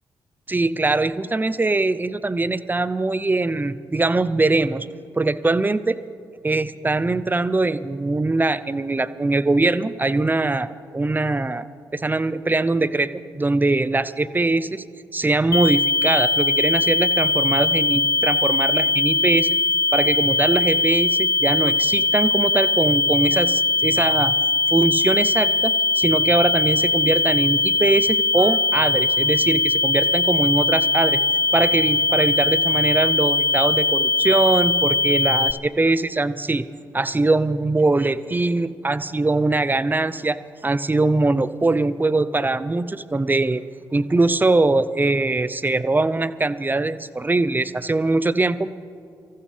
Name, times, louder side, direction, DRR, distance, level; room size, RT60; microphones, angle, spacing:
voice 1, 0.5-4.9 5.1-6.0 6.4-11.6 11.9-14.8 15.1-19.6 19.9-24.3 24.7-31.2 31.5-36.7 36.9-40.4 40.6-43.6 43.9-48.7, right 2 dB, 20° right, 15 dB, 0.7 m, -22 dB
sound 1, 15.5-35.5, left 3 dB, 30° left, 0.6 m, -20 dB
24.5 x 14.5 x 3.4 m, 2.3 s
hypercardioid pair, 40°, 9 cm